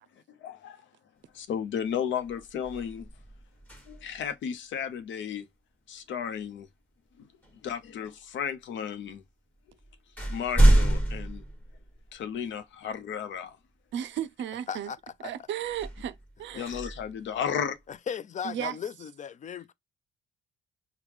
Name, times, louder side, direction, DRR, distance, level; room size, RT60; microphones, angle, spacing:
voice 1, 0.4-0.8 1.3-3.1 3.9-5.5 5.9-6.7 7.2-7.3 7.6-9.2 10.3-11.4 12.1-13.6 16.6-17.8, left 8 dB, 70° left, 0.8 m, -34 dB
sound 1, 1.6-1.8 2.2-4.3 6.4-6.6 7.4-8.2 9.1-9.2 9.6-12.4 12.9-13.0 15.6-17.8, right 1 dB, 10° left, 1.4 m, -27 dB
voice 2, 13.9-14.9 15.2-16.9 18.4-18.8, right 10 dB, 70° right, 0.5 m, -35 dB
voice 3, 14.7-15.3 16.5-16.6 17.9-19.7, left 7 dB, 40° left, 0.4 m, -37 dB
4.8 x 2.2 x 3.4 m
cardioid pair, 90°, 20 cm